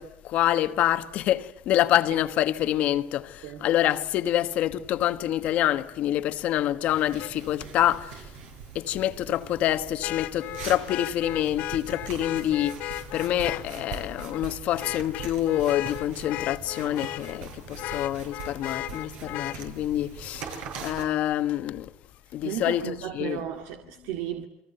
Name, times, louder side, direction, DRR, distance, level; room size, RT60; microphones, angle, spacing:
voice 1, 0.0-8.3 8.7-21.9 22.3-23.4, left 12 dB, 55° left, 1.4 m, -26 dB
sound 1, 6.8-21.1, right 6 dB, 65° right, 6.5 m, -42 dB
Vehicle horn car horn honking, 7.2-7.3 10.0-13.7 14.2-14.4 14.8-17.4 17.8-19.6 21.4-21.5, left 15 dB, 70° left, 1.7 m, -35 dB
voice 2, 22.4-24.4, right 11 dB, 85° right, 2.2 m, -34 dB
29.5 x 23.5 x 8.0 m
cardioid pair, 150°, 3 cm